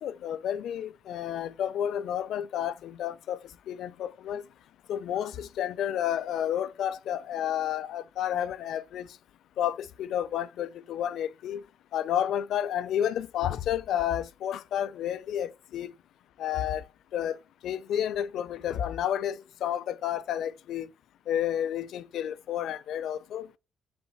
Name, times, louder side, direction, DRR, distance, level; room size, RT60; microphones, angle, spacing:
voice 1, 0.0-3.4 3.7-4.4 4.9-9.0 9.6-11.6 11.9-15.9 16.4-16.8 17.1-17.3 17.6-20.9 21.3-23.6, left 10 dB, 75° left, 0.5 m, -31 dB
7.9 x 4.1 x 6.1 m
cardioid pair, 90°, 0 cm